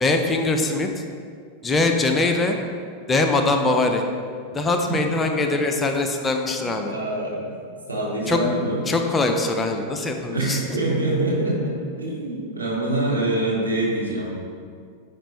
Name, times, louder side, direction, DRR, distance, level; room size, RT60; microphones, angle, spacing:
voice 1, 0.0-0.9 1.6-2.6 3.1-4.0 4.5-6.9 8.3-8.4 8.9-10.6, left 2 dB, 15° left, 4 dB, 0.6 m, -22 dB
voice 2, 5.2-5.8 6.5-7.6 7.9-8.8 10.3-14.3, right 1 dB, 80° right, -4 dB, 1.7 m, -25 dB
10.0 x 4.4 x 3.2 m, 2.1 s
figure-of-eight pair, 90°, 0 cm